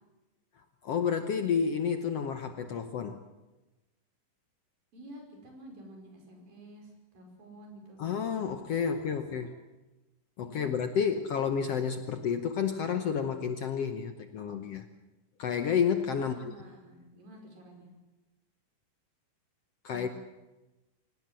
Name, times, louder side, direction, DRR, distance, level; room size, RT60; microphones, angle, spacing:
voice 1, 0.8-3.2 8.0-9.5 10.4-14.9 15.4-16.3 19.8-20.1, left 7 dB, 65° left, 7 dB, 1.6 m, -30 dB
voice 2, 4.9-8.0 8.7-9.5 10.4-10.8 16.2-17.9 19.9-20.1, right 1 dB, 80° right, 2 dB, 7.1 m, -50 dB
25.5 x 18.0 x 7.7 m, 1.1 s
omnidirectional pair, 4.0 m